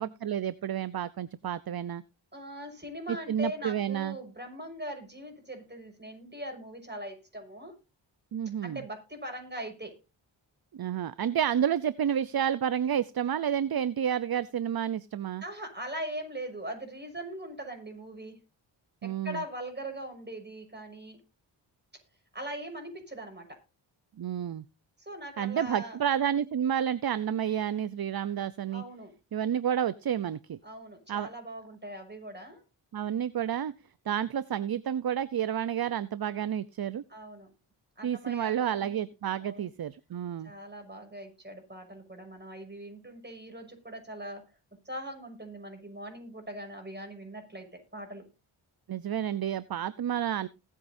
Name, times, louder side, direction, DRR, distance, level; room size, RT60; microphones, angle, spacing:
voice 1, 0.0-2.0 3.3-4.2 8.3-8.8 10.7-15.4 19.0-19.4 24.2-24.6 25.4-28.8 29.3-30.6 31.1-31.3 32.9-33.7 34.1-37.0 38.0-40.5 48.9-50.5, right 9 dB, 45° right, 16 dB, 0.7 m, -30 dB
voice 2, 2.3-7.7 8.6-10.0 15.4-18.4 19.0-21.2 22.3-23.6 25.0-26.0 28.7-29.1 30.6-32.6 37.1-37.5 38.0-39.0 39.4-39.7 40.4-44.4 44.8-48.2, right 1 dB, 20° right, 4 dB, 6.4 m, -41 dB
20.0 x 8.6 x 2.7 m, 0.29 s
cardioid pair, 45°, 50 cm